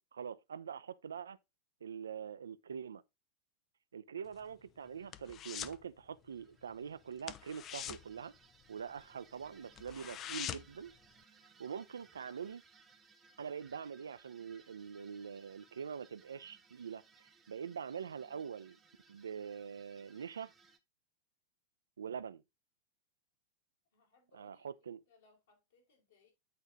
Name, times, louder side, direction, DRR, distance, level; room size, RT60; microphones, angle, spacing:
voice 1, 0.1-1.4 1.8-3.0 3.9-8.3 8.7-10.9 11.6-12.6 13.4-18.8 19.1-20.5 22.0-22.4 24.4-25.0, right 7 dB, 70° right, 0.5 m, -44 dB
sound 1, 4.2-5.8 6.1-6.4 6.7-6.8 7.2-9.1 9.4-9.5 9.8-10.9 11.2-11.3, left 10 dB, 30° left, 0.5 m, -44 dB
sound 2, 4.8-5.3 6.2-20.8, right 4 dB, 20° right, 0.9 m, -65 dB
voice 2, 23.9-26.3, left 4 dB, 65° left, 4.3 m, -69 dB
8.5 x 4.4 x 3.8 m
figure-of-eight pair, 90°, 0 cm